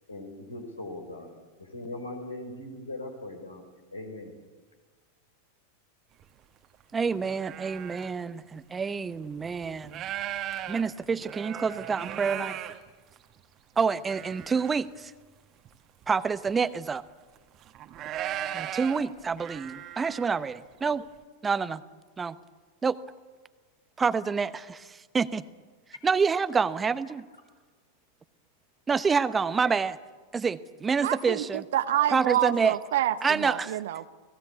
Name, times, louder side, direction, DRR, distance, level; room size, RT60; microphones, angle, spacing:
voice 1, 0.1-1.3 1.6-3.6 3.9-4.3 8.0-8.1, left 2 dB, 80° left, 4 dB, 5.0 m, -40 dB
sound 1, 6.2-6.3 6.7-8.1 8.8-8.9 9.4-13.4 13.9-14.8 15.1-15.2 15.6-15.7 16.0-16.7 17.3-20.4, right 11 dB, 35° right, 1.7 m, -38 dB
voice 2, 6.9-10.0 10.7-12.6 13.8-15.1 16.1-17.0 18.5-21.0 21.4-21.8 22.2-22.3 22.8-23.0 24.0-25.4 26.0-27.2 28.9-30.0 30.3-31.6 32.1-32.7 33.2-33.8, right 5 dB, 15° right, 15 dB, 0.9 m, -27 dB
voice 3, 31.0-34.1, right 12 dB, 55° right, 11 dB, 0.9 m, -28 dB
29.5 x 19.5 x 8.3 m, 1.4 s
figure-of-eight pair, 90°, 0 cm